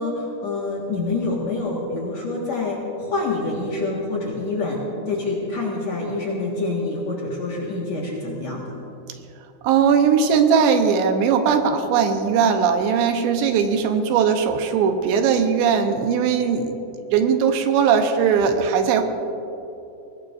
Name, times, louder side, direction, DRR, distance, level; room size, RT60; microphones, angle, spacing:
voice 1, 0.0-8.8, left 2 dB, 55° left, -4 dB, 2.2 m, -26 dB
voice 2, 9.6-16.8 17.1-19.0, right 6 dB, 80° right, 6 dB, 3.0 m, -19 dB
23.0 x 18.0 x 2.6 m, 2.9 s
omnidirectional pair, 5.1 m